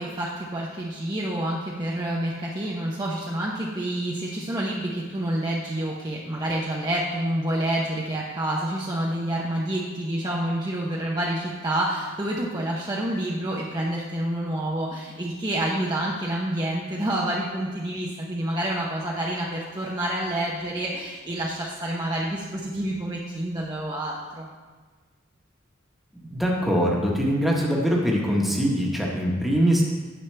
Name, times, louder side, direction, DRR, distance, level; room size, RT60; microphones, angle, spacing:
voice 1, 0.0-24.5, right 1 dB, 20° right, -4 dB, 0.7 m, -28 dB
voice 2, 26.3-29.8, equal, ahead, -3 dB, 1.3 m, -22 dB
9.9 x 7.4 x 3.3 m, 1.4 s
head